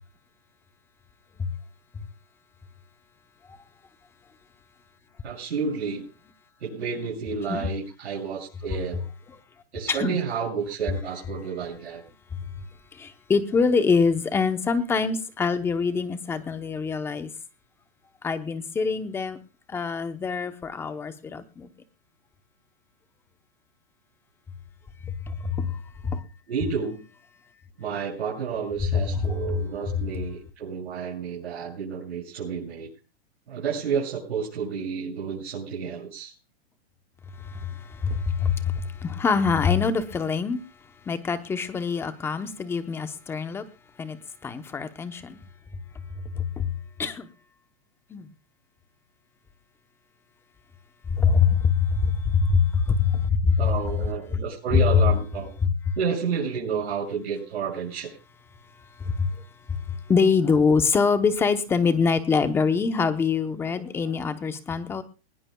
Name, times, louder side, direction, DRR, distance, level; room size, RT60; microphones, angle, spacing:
voice 1, 5.2-6.1 6.6-9.0 9.7-12.0 26.5-27.0 27.8-32.9 33.5-36.3 53.6-55.5 56.0-58.1, right 6 dB, 85° right, 6.8 m, -30 dB
voice 2, 9.9-10.2 13.0-17.3 18.2-19.4 19.7-21.7 25.6-25.7 26.0-26.2 37.5-37.7 38.0-40.6 41.1-43.6 44.0-44.2 44.4-45.4 46.4-46.7 47.0-47.3 48.1-48.3 51.1-53.6 59.1-59.3 60.1-65.0, left 5 dB, 5° left, 0.8 m, -24 dB
21.0 x 19.5 x 2.3 m
hypercardioid pair, 165°, 32 cm